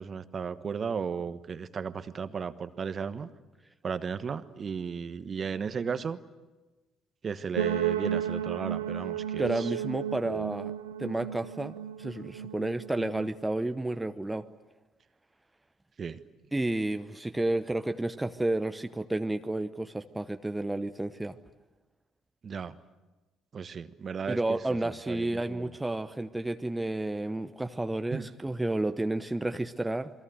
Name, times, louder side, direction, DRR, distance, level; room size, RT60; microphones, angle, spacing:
voice 1, 0.0-3.3 3.8-6.2 7.2-9.7 16.0-16.2 22.4-22.8 23.5-24.6 24.8-25.7 28.1-28.3, right 6 dB, 40° right, 13 dB, 1.2 m, -35 dB
sound 1, 7.5-13.4, right 10 dB, 80° right, 1.3 m, -33 dB
voice 2, 9.4-10.7 11.0-14.5 16.5-21.4 24.3-30.1, right 2 dB, 10° right, 9 dB, 0.9 m, -31 dB
28.0 x 22.5 x 7.9 m, 1.2 s
figure-of-eight pair, 50°, 0 cm